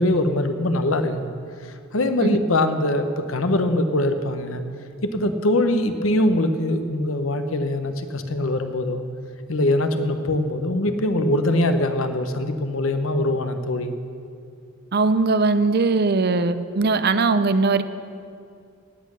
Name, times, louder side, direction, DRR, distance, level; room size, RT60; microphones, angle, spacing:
voice 1, 0.0-1.3 1.6-4.6 5.0-9.0 9.5-13.9, left 1 dB, 80° left, 8 dB, 1.0 m, -22 dB
voice 2, 14.9-17.8, right 3 dB, 50° right, 12 dB, 0.6 m, -20 dB
16.5 x 8.8 x 6.4 m, 2.4 s
head